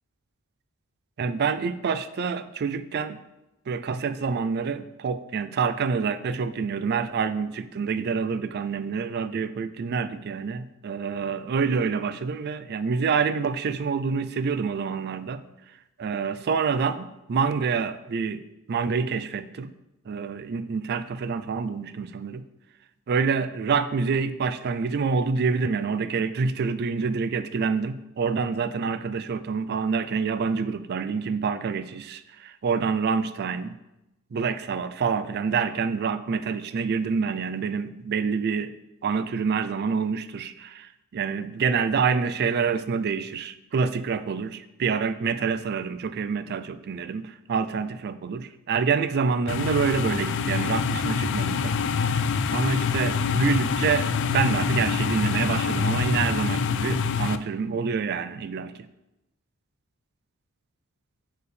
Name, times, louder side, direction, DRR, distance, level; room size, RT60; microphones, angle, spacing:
voice 1, 1.2-3.2 3.7-15.4 16.0-19.7 20.1-22.4 23.1-33.7 34.3-38.7 39.0-51.8 52.5-58.7, right 5 dB, 50° right, 13 dB, 0.4 m, -27 dB
sound 1, 49.5-57.4, left 5 dB, 55° left, 0.4 m, -25 dB
8.3 x 4.7 x 3.3 m, 0.93 s
head